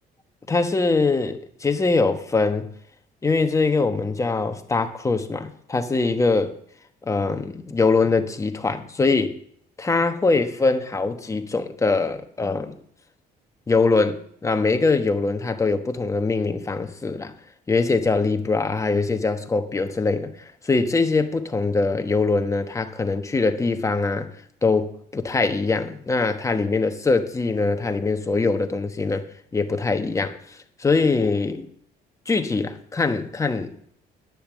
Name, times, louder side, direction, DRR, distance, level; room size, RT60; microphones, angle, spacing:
voice 1, 0.5-2.7 3.2-6.5 7.1-9.4 9.8-12.7 13.7-17.3 17.7-24.3 24.6-29.2 29.5-31.7 32.3-33.7, left 3 dB, 20° left, 7 dB, 1.1 m, -23 dB
10.0 x 7.0 x 6.2 m, 0.65 s
cardioid pair, 110°, 17 cm